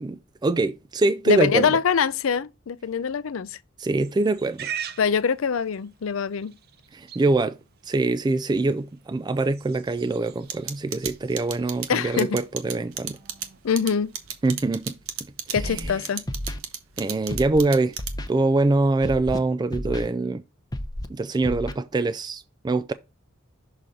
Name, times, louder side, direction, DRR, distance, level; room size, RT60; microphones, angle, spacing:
voice 1, 0.0-1.7 3.8-4.7 6.9-7.6 7.8-13.2 14.4-15.0 15.6-15.9 17.0-18.0 18.3-20.4 21.1-22.9, right 2 dB, 20° right, 0.3 m, -24 dB
voice 2, 1.3-3.6 5.0-6.5 11.9-12.4 13.6-14.1 15.5-16.2, left 6 dB, 70° left, 0.5 m, -24 dB
Livestock farm animals working animals, 4.0-14.8, right 9 dB, 50° right, 0.6 m, -44 dB
sound 1, 10.5-18.4, right 9 dB, 85° right, 1.0 m, -33 dB
Scratching (performance technique), 15.5-15.9 16.3-16.6 17.3-17.6 18.0-18.3 19.0-19.4 19.7-20.1 20.7-21.0 21.4-21.7, left 1 dB, 20° left, 0.7 m, -31 dB
6.4 x 3.8 x 4.2 m
head